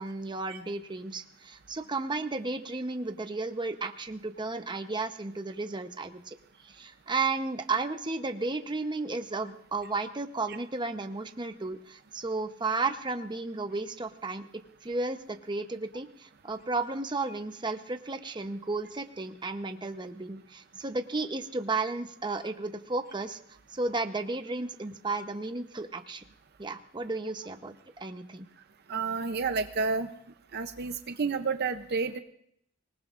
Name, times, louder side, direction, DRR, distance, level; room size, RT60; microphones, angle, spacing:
voice 1, 0.0-6.3 6.6-14.5 14.8-23.4 23.7-26.2 26.6-28.5, right 3 dB, 20° right, 7 dB, 0.9 m, -33 dB
voice 2, 28.9-30.1 30.5-32.2, right 4 dB, 55° right, 9 dB, 0.6 m, -30 dB
24.5 x 19.5 x 2.5 m, 0.72 s
head